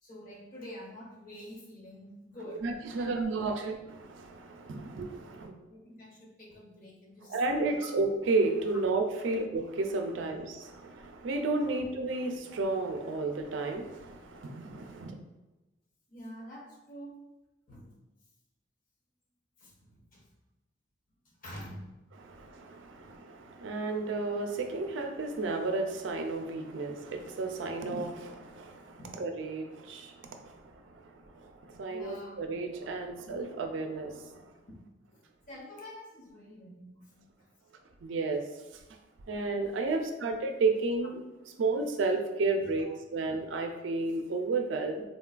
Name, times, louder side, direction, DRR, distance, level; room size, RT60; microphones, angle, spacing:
voice 1, 0.0-3.6 5.7-7.9 9.2-9.3 10.1-10.3 11.6-11.8 12.1-12.7 16.1-17.2 17.7-17.9 19.6-20.3 21.2-21.9 22.9-23.1 29.0-29.2 31.9-32.4 33.0-33.1 34.7-34.8 35.1-35.2 35.5-37.3 39.9-40.0 42.6-42.9, equal, 45° left, -2 dB, 0.6 m, -48 dB
voice 2, 2.6-3.7 4.0-5.5 7.3-15.1 22.2-30.6 31.4-34.5 38.0-38.4 39.3-41.2 41.6-45.0, right 3 dB, 80° right, 5 dB, 0.4 m, -32 dB
3.7 x 2.2 x 2.4 m, 1.1 s
head